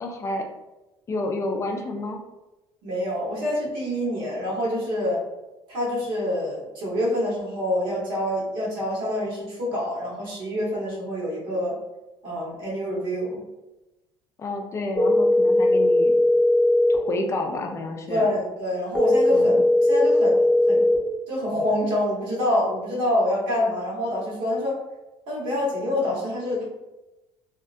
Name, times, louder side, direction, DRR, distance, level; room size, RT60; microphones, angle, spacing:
voice 1, 0.0-0.5 1.1-2.2 14.4-16.1 16.9-18.3 19.3-19.6, left 2 dB, 30° left, 3 dB, 0.4 m, -29 dB
voice 2, 2.8-5.2 5.7-11.7 12.2-13.4 18.1-19.5 19.9-20.9 21.3-24.8 25.3-26.6, left 1 dB, 70° right, -5 dB, 1.3 m, -26 dB
sound 1, 15.0-17.0 19.0-21.0, left 1 dB, 10° left, 0.8 m, -18 dB
2.7 x 2.2 x 2.5 m, 1.0 s
cardioid pair, 125°, 9 cm